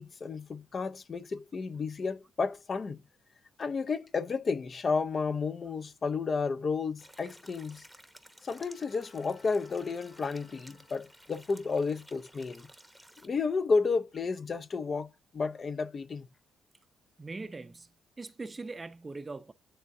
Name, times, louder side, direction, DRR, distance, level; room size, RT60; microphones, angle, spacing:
voice 1, 0.0-3.0 3.6-7.8 8.4-12.7 13.2-16.3, left 4 dB, 40° left, 0.6 m, -32 dB
sound 1, 7.0-13.3, equal, ahead, 1.0 m, -56 dB
Bowed string instrument, 8.4-11.6, left 5 dB, 70° left, 3.2 m, -61 dB
voice 2, 17.2-17.9 18.2-19.5, right 3 dB, 25° right, 0.5 m, -41 dB
10.0 x 3.6 x 2.6 m
cardioid pair, 90°, 0 cm